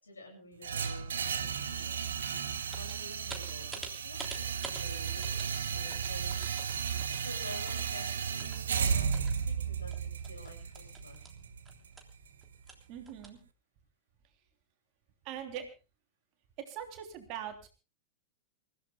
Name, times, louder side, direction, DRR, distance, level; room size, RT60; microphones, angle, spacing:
voice 1, 0.0-2.1 2.7-6.6 7.1-11.2, left 1 dB, 75° left, 2 dB, 7.8 m, -50 dB
sound 1, 0.6-12.7, right 7 dB, 65° right, 1.2 m, -34 dB
sound 2, 2.6-9.4 9.8-13.3, right 3 dB, 10° right, 3.3 m, -49 dB
voice 2, 12.9-13.4 15.2-15.7 16.7-17.7, right 9 dB, 40° right, 5 dB, 3.2 m, -41 dB
28.0 x 16.0 x 2.3 m, 0.31 s
figure-of-eight pair, 90°, 0 cm